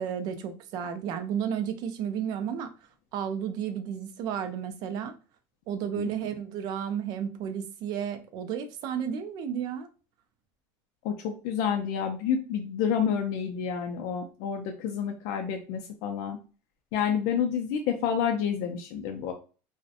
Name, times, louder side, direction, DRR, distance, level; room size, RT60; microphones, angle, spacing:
voice 1, 0.0-2.7 3.1-5.1 5.7-9.9, right 8 dB, 50° right, 0.4 m, -32 dB
voice 2, 11.0-16.4 16.9-19.3, left 7 dB, 65° left, 0.4 m, -29 dB
2.5 x 2.0 x 2.6 m
cardioid pair, 160°, 9 cm